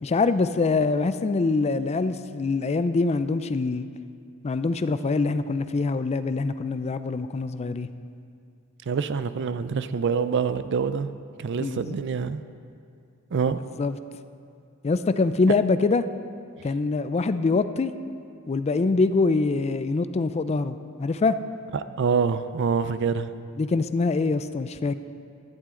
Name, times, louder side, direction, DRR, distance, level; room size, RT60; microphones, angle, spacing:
voice 1, 0.0-3.9 4.4-7.9 11.6-11.9 13.8-14.0 14.8-16.0 16.6-17.9 18.5-21.4 23.6-25.0, left 3 dB, 30° left, 12 dB, 0.4 m, -24 dB
voice 2, 8.9-11.1 11.4-12.4 13.3-13.6 22.0-23.3, right 5 dB, 55° right, 12 dB, 0.4 m, -25 dB
16.0 x 11.5 x 3.8 m, 2.4 s
head